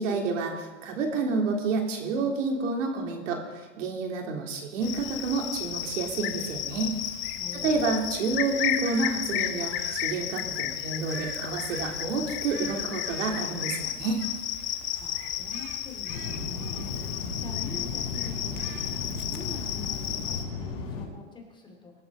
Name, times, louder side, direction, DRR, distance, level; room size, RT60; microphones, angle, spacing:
voice 1, 0.0-6.9 7.5-14.2, right 4 dB, 75° right, 2 dB, 3.5 m, -29 dB
Cricket, 4.8-20.4, left 11 dB, 30° left, 1.1 m, -33 dB
voice 2, 7.4-7.9 14.9-16.9 17.4-21.9, left 4 dB, 10° left, 2 dB, 2.6 m, -45 dB
sound 1, 8.8-9.1 9.7-10.0 11.1-11.4 11.7-12.0 12.5-14.7 14.9-15.1 15.5-17.3 17.7-17.9 18.2-19.2, right 8 dB, 35° right, 1.6 m, -45 dB
sound 2, 16.1-21.1, left 4 dB, 55° left, 6.3 m, -35 dB
23.0 x 13.0 x 4.0 m, 1.3 s
supercardioid pair, 145°, 37 cm